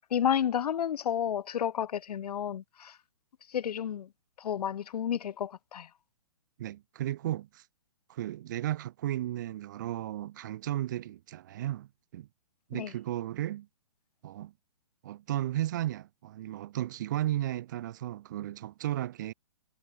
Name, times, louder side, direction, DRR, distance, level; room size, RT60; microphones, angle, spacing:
voice 1, 0.1-3.0 3.5-4.1 4.4-5.9 12.7-12.9, left 9 dB, 80° left, 0.6 m, -31 dB
voice 2, 6.6-7.6 8.1-12.3 12.7-13.7 14.2-14.5 15.0-19.3, right 13 dB, 30° right, 0.9 m, -34 dB
hypercardioid pair, 170°, 20 cm